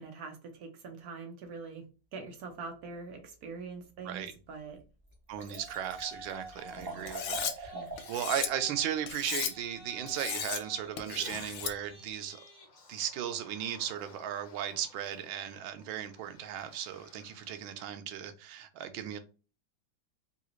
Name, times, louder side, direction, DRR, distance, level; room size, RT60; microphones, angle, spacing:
voice 1, 0.0-1.8 2.1-4.8 6.8-7.1 7.7-7.9, right 4 dB, 65° right, 0.9 m, -44 dB
voice 2, 4.0-4.3 5.3-7.7 8.1-12.4 12.9-19.2, right 10 dB, 85° right, 1.4 m, -36 dB
Liquid, 4.8-4.9 5.1-8.3 8.6-8.7, right 2 dB, 30° right, 0.4 m, -43 dB
Yell, 5.5-7.1 7.5-17.9, right 1 dB, 55° left, 1.2 m, -53 dB
Cutlery silverware, 7.1-7.5 8.0-8.5 9.1-9.5 10.1-10.6 11.0-11.7, left 9 dB, 80° left, 1.3 m, -36 dB
3.7 x 2.4 x 2.9 m
omnidirectional pair, 2.1 m